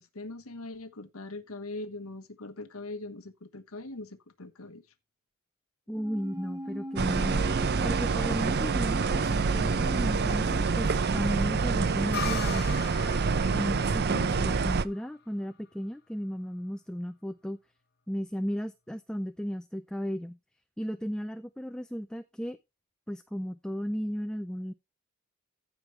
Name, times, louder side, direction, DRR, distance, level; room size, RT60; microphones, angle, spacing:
voice 1, 0.0-4.8, left 2 dB, 85° left, 1.3 m, -41 dB
voice 2, 5.9-7.5 7.8-12.8 13.5-17.6 18.1-20.4 20.8-22.6 23.1-24.7, equal, 5° left, 0.5 m, -35 dB
sound 1, 5.9-12.5 12.8-12.9, equal, 20° right, 1.1 m, -42 dB
sound 2, 7.0-14.8, right 4 dB, 50° right, 0.6 m, -27 dB
sound 3, 12.1-15.7, left 8 dB, 50° left, 0.9 m, -40 dB
15.0 x 5.2 x 3.3 m
head